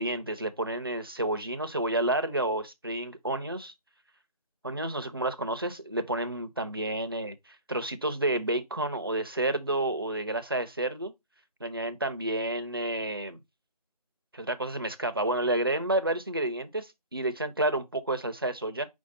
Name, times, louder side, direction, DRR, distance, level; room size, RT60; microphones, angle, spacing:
voice 1, 0.0-3.7 4.6-11.1 11.6-13.4 14.3-18.9, right 1 dB, 35° right, 0.5 m, -30 dB
4.7 x 2.6 x 4.0 m
figure-of-eight pair, 165°, 21 cm